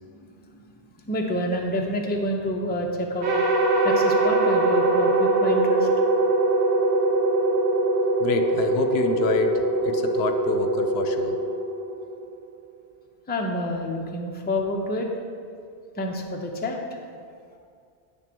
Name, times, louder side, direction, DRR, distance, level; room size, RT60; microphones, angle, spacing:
voice 1, 1.1-3.3 3.8-5.9 13.3-15.1 15.9-17.0, left 1 dB, 10° left, 1 dB, 0.5 m, -28 dB
sound 1, 3.2-12.5, right 2 dB, 85° right, 1.1 m, -22 dB
voice 2, 8.2-11.4, left 5 dB, 75° left, 6 dB, 0.8 m, -27 dB
9.0 x 3.5 x 6.0 m, 2.3 s
omnidirectional pair, 1.1 m